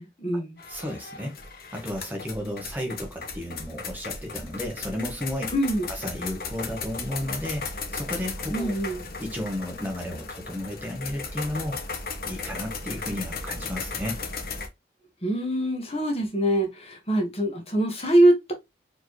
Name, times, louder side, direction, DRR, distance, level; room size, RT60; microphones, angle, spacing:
voice 1, 0.0-0.6 5.5-5.9 8.5-9.0 15.2-18.5, right 1 dB, 35° left, 1.2 m, -23 dB
sound 1, 0.6-14.7, left 4 dB, 55° left, 0.9 m, -36 dB
voice 2, 0.7-1.3 1.7-5.5 5.9-8.8 9.2-11.8 12.2-14.2, left 1 dB, 10° right, 1.0 m, -33 dB
4.4 x 3.1 x 3.0 m
head